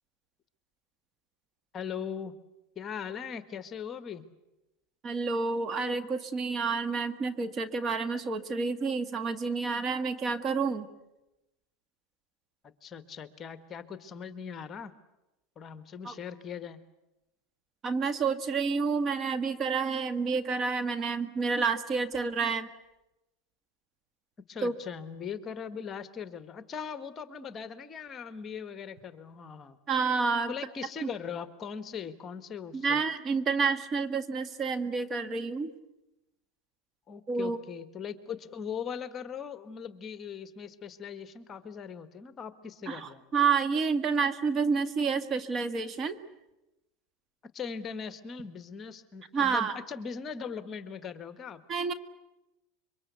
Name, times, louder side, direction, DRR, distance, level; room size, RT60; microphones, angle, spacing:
voice 1, 1.7-2.4 2.7-4.3 12.8-14.9 15.5-16.8 24.5-29.8 30.5-33.0 37.1-43.2 47.5-51.6, left 7 dB, 30° left, 11 dB, 1.5 m, -40 dB
voice 2, 5.0-10.9 16.0-16.1 17.8-22.7 24.6-24.7 29.9-30.5 31.0-31.1 32.7-35.7 37.3-37.6 42.9-46.2 49.3-49.8 51.7-51.9, right 5 dB, 30° right, 10 dB, 1.7 m, -29 dB
26.5 x 24.0 x 8.3 m, 0.95 s
supercardioid pair, 120°, 0 cm